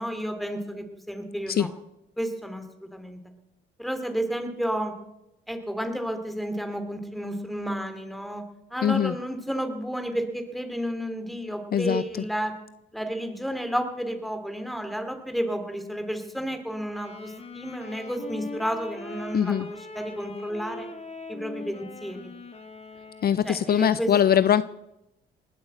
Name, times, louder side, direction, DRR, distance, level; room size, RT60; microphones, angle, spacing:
voice 1, 0.0-1.7 2.2-3.2 3.8-4.9 5.5-8.4 8.7-12.5 12.9-20.9 21.3-22.3 23.4-24.4, equal, ahead, 7 dB, 2.9 m, -31 dB
voice 2, 8.8-9.1 11.7-12.0 19.3-19.7 23.2-24.6, left 9 dB, 50° left, 15 dB, 0.6 m, -21 dB
Wind instrument woodwind instrument, 16.9-23.7, left 3 dB, 30° left, 2.4 m, -41 dB
19.5 x 8.5 x 7.9 m, 0.89 s
cardioid pair, 90°, 20 cm